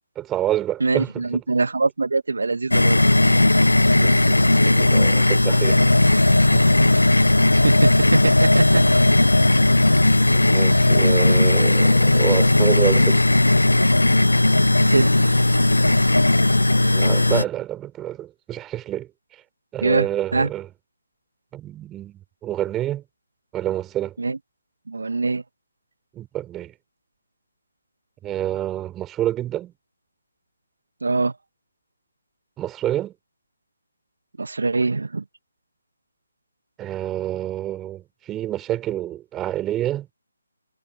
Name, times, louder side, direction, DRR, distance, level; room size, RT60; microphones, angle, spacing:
voice 1, 0.1-1.4 3.9-6.1 6.5-6.7 10.3-13.2 16.9-19.4 19.7-20.7 21.5-23.0 23.5-24.1 26.1-26.7 28.2-29.7 32.6-33.1 36.8-40.1, right 13 dB, 10° right, 5.0 m, -28 dB
voice 2, 0.8-3.0 7.6-8.8 14.8-15.4 19.8-20.1 20.3-20.5 24.2-24.4 24.9-25.4 31.0-31.4 34.4-35.2, right 3 dB, 70° right, 2.1 m, -23 dB
sound 1, 2.7-17.4, left 2 dB, 85° left, 1.0 m, -16 dB
figure-of-eight pair, 150°, 0 cm